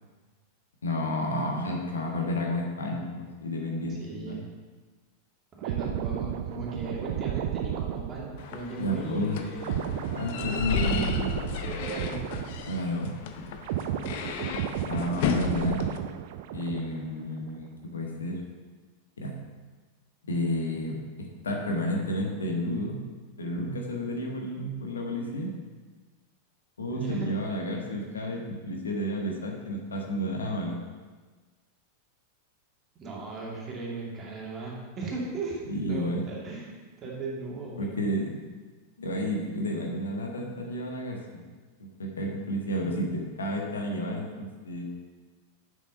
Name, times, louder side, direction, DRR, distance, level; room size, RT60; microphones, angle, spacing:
voice 1, 0.8-4.0 4.3-4.4 8.8-9.4 10.1-10.9 12.6-13.5 14.9-15.8 16.5-18.4 19.2-19.4 20.3-23.0 23.4-25.5 26.8-30.8 35.7-36.2 37.8-38.4 39.0-41.4 41.8-44.8, equal, 70° left, 0 dB, 1.5 m, -31 dB
voice 2, 4.0-4.4 5.6-9.8 10.0-10.2 10.7-11.3 11.6-12.2 26.9-27.3 33.0-38.0, right 3 dB, 25° right, -3 dB, 2.5 m, -37 dB
sound 1, 5.6-13.1 13.4-17.1 17.4-17.6, right 10 dB, 50° right, 0.5 m, -33 dB
sound 2, 8.4-16.0, left 7 dB, 50° left, 0.7 m, -34 dB
7.4 x 7.1 x 5.4 m, 1.4 s
figure-of-eight pair, 90°, 0 cm